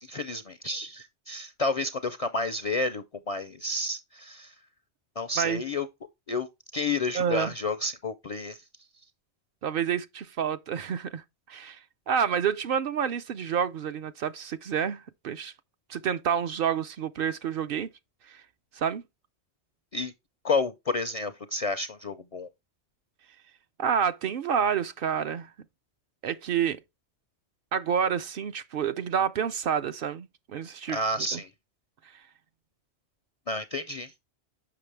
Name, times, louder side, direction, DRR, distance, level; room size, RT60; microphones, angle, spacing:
voice 1, 0.0-4.5 5.2-5.9 6.3-6.5 6.7-8.6 19.9-20.1 20.4-22.5 30.9-31.5 33.5-34.1, left 2 dB, 55° left, 0.4 m, -30 dB
voice 2, 7.1-7.5 9.6-11.2 11.5-11.8 12.1-15.5 15.9-17.9 18.3-18.4 18.8-19.0 23.8-25.5 26.2-26.8 27.7-31.0 31.3-31.4, right 8 dB, 60° right, 0.7 m, -28 dB
6.7 x 5.7 x 3.3 m
omnidirectional pair, 1.1 m